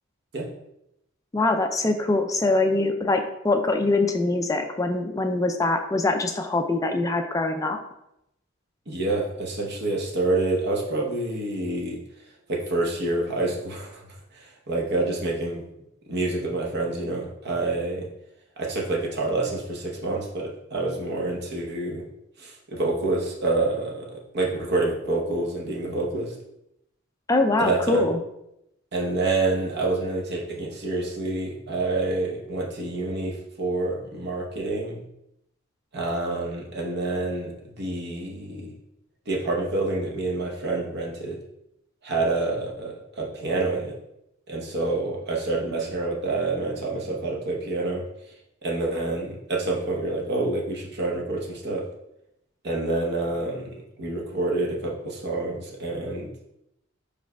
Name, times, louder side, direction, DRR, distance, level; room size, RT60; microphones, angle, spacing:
voice 1, 1.3-7.8 27.3-28.2, left 2 dB, 15° left, 5 dB, 0.4 m, -23 dB
voice 2, 8.9-12.0 12.5-14.0 14.3-15.6 16.1-18.1 18.6-22.0 22.4-26.3 27.6-28.1 28.9-35.1 35.9-38.7 39.3-41.4 42.0-43.9 44.5-48.0 48.6-51.8 52.6-56.5, right 2 dB, 55° right, -1 dB, 0.9 m, -27 dB
4.9 x 4.8 x 2.2 m, 0.82 s
head